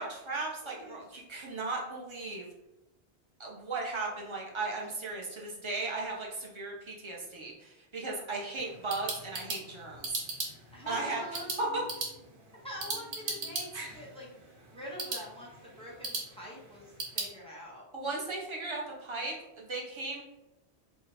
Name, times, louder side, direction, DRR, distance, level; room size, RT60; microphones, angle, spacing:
voice 1, 0.0-2.5 3.4-10.2 10.9-11.2 11.6-11.8 17.9-20.2, right 3 dB, 35° right, -2 dB, 0.5 m, -36 dB
voice 2, 0.6-1.0 8.7-8.8 10.7-11.6 12.6-14.3 14.7-17.8, equal, 5° left, -6 dB, 0.8 m, -45 dB
sound 1, 8.6-17.3, right 3 dB, 85° right, 1.1 m, -39 dB
2.7 x 2.1 x 4.0 m, 0.93 s
omnidirectional pair, 1.2 m